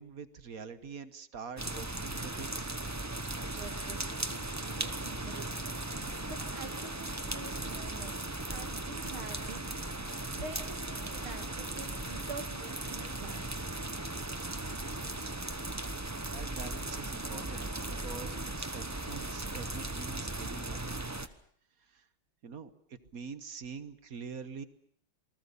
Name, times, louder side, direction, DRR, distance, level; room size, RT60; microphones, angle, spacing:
voice 1, 0.0-2.7 15.2-15.4 16.3-20.8 21.8-22.1 22.4-24.6, right 5 dB, 50° right, 12 dB, 1.5 m, -45 dB
sound 1, 1.6-21.3, right 2 dB, 15° right, 0.5 m, -37 dB
voice 2, 3.5-5.5 6.3-8.2 8.5-9.6 10.4-13.6, right 4 dB, 80° right, 6 dB, 3.5 m, -46 dB
27.5 x 20.5 x 7.0 m, 0.64 s
omnidirectional pair, 2.3 m